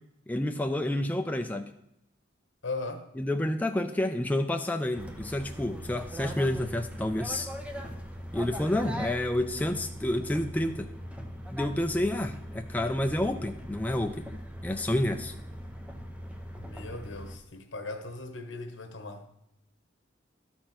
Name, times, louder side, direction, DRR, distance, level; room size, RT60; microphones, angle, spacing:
voice 1, 0.3-1.7 3.2-7.5 8.3-10.9 11.5-14.2 14.6-15.3, left 1 dB, 10° left, 0.3 m, -29 dB
voice 2, 2.6-3.1 16.6-19.2, left 3 dB, 70° left, 1.2 m, -38 dB
sound 1, 4.9-17.4, equal, 5° right, 0.8 m, -40 dB
12.5 x 4.4 x 6.0 m
head